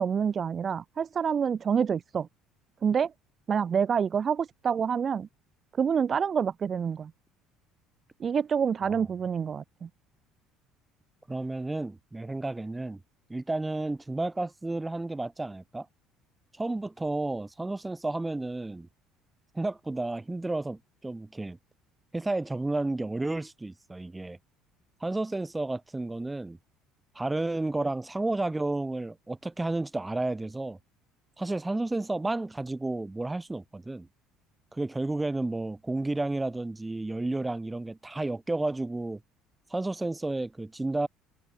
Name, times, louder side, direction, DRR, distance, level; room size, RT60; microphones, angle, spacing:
voice 1, 0.0-2.3 2.8-3.1 3.5-5.3 5.8-7.1 8.2-9.9, right 7 dB, 30° right, 1.4 m, -27 dB
voice 2, 11.3-13.0 13.3-15.9 16.6-18.9 19.5-21.6 22.1-24.4 25.0-26.6 27.2-30.8 31.4-34.1 34.7-39.2 39.7-41.1, right 2 dB, 10° right, 2.0 m, -31 dB
cardioid pair, 130°, 0 cm